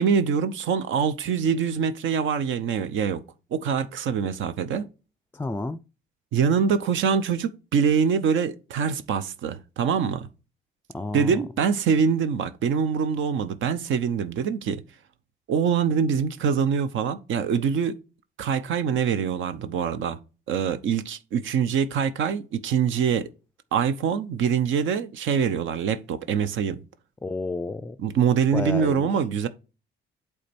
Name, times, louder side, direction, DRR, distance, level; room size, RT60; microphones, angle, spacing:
voice 1, 0.0-3.2 3.5-4.9 6.3-10.3 11.1-14.8 15.5-18.0 18.4-20.2 20.5-23.3 23.7-26.8 28.0-29.5, right 6 dB, 75° right, 0.7 m, -24 dB
voice 2, 5.3-5.8 10.9-11.4 27.2-28.0 28.5-29.2, left 3 dB, 10° left, 0.4 m, -31 dB
8.4 x 3.5 x 4.3 m
cardioid pair, 90°, 20 cm